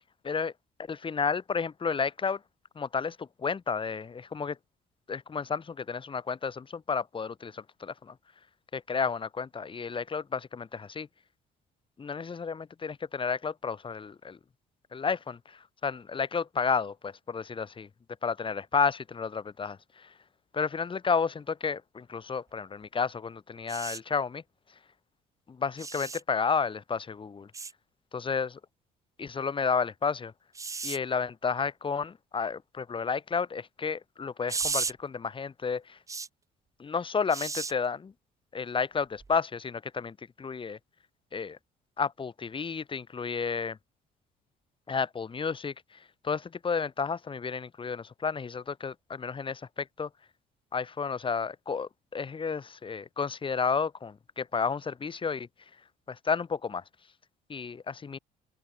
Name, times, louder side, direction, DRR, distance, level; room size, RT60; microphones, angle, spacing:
voice 1, 0.9-2.4 2.8-4.6 5.1-8.2 8.7-11.1 12.0-14.4 14.9-17.9 18.2-20.1 20.5-24.4 25.5-27.5 28.1-28.6 29.2-30.3 30.8-36.0 36.8-38.1 38.5-40.8 41.3-41.6 42.0-43.8 44.9-50.1 50.7-55.5 56.1-56.8 57.5-58.2, left 5 dB, 30° left, 3.9 m, -32 dB
sound 1, 23.7-24.0 25.8-26.2 27.5-27.7 30.5-31.0 34.5-34.9 36.1-36.3 37.3-37.7 39.2-39.4, right 4 dB, 20° right, 0.7 m, -34 dB
open air
cardioid pair, 110°, 17 cm